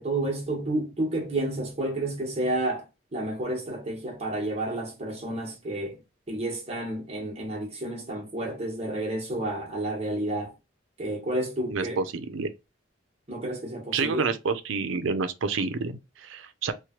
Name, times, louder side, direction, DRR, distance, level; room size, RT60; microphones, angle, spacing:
voice 1, 0.0-2.8 3.1-6.0 6.3-10.5 11.0-12.0 13.3-14.3, right 1 dB, 35° right, 1.0 m, -30 dB
voice 2, 11.7-12.5 13.9-16.7, right 4 dB, 90° right, 0.5 m, -29 dB
3.0 x 2.1 x 2.9 m
head